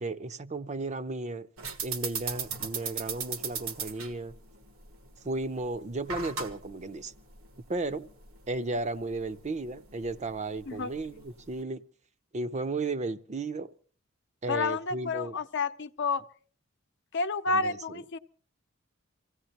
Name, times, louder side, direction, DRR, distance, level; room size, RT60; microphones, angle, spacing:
voice 1, 0.0-1.5 1.8-4.3 5.2-7.1 7.7-8.1 8.5-11.8 12.3-13.7 14.4-15.4 17.5-18.0, right 2 dB, 35° right, 0.6 m, -34 dB
sound 1, 1.6-11.6, right 5 dB, 85° right, 1.5 m, -39 dB
voice 2, 14.5-16.2 17.1-18.2, left 4 dB, 60° left, 0.7 m, -30 dB
26.0 x 16.0 x 2.9 m
head